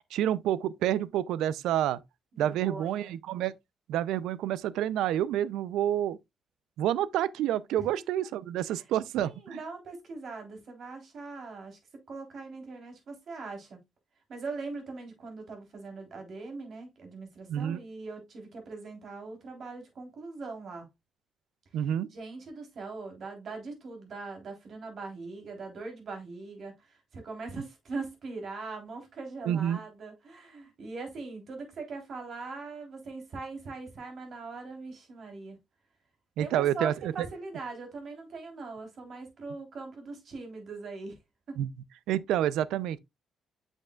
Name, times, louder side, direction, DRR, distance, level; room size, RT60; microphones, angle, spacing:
voice 1, 0.1-2.0 2.4-3.5 3.9-6.2 6.8-9.6 17.5-17.8 21.7-22.1 29.4-29.8 36.4-37.3 41.6-41.7 42.1-43.0, right 11 dB, 85° right, 0.4 m, -28 dB
voice 2, 2.3-3.2 7.9-8.3 8.7-8.8 9.2-11.8 12.1-13.8 14.3-20.8 22.1-35.6 36.4-41.2 41.5-41.6, right 3 dB, 55° right, 3.4 m, -41 dB
7.7 x 6.3 x 2.3 m
cardioid pair, 90°, 0 cm